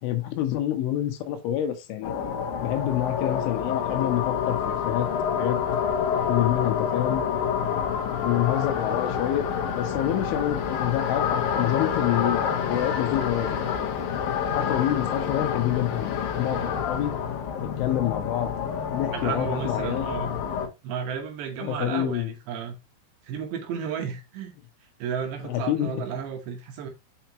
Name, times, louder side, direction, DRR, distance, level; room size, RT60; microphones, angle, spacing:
voice 1, 0.0-2.1 2.6-5.1 5.4-5.6 6.3-7.2 8.2-9.5 9.7-13.7 14.5-17.1 17.6-18.5 18.9-20.1 21.6-22.3 25.4-26.0, left 12 dB, 80° left, 3.4 m, -27 dB
sound 1, 2.0-20.7, left 7 dB, 65° left, 2.5 m, -28 dB
voice 2, 19.1-20.3 20.8-22.8 23.2-24.5 25.0-26.9, right 7 dB, 75° right, 2.9 m, -33 dB
7.1 x 5.7 x 2.9 m
omnidirectional pair, 5.7 m